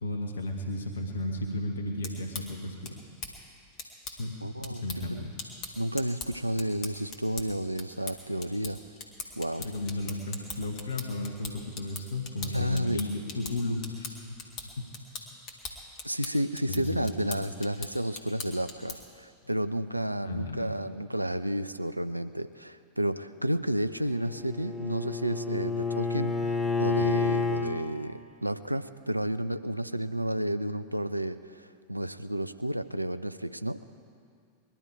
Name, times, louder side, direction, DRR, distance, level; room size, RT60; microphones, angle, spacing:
voice 1, 0.0-3.0 4.2-4.4 4.7-5.3 9.6-14.9 16.7-17.3 20.2-20.7, left 1 dB, 70° left, 3 dB, 1.3 m, -34 dB
sound 1, 1.8-19.2, left 4 dB, 35° left, 2.2 m, -43 dB
voice 2, 4.4-5.2 5.8-8.8 9.4-9.6 12.5-13.0 16.0-33.8, right 1 dB, 90° right, 12 dB, 0.5 m, -31 dB
Bowed string instrument, 23.9-27.7, left 4 dB, 20° left, 1.2 m, -30 dB
21.0 x 12.0 x 4.8 m, 2.3 s
figure-of-eight pair, 90°, 0 cm